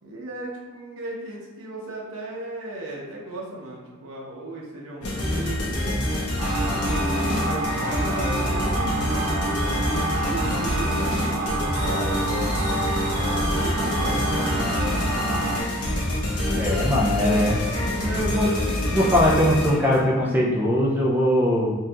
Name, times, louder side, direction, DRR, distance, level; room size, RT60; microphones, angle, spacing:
voice 1, 0.0-6.0 6.8-9.5 10.1-12.4 13.3-14.6, right 2 dB, 65° right, -4 dB, 1.0 m, -36 dB
sound 1, 5.0-20.1, left 1 dB, 85° left, 1.0 m, -26 dB
sound 2, 6.4-15.6, right 2 dB, 90° right, 0.7 m, -28 dB
voice 2, 16.5-17.6 18.0-18.5 18.9-21.7, left 1 dB, 10° right, -5 dB, 0.5 m, -21 dB
4.6 x 2.8 x 2.4 m, 1.4 s
head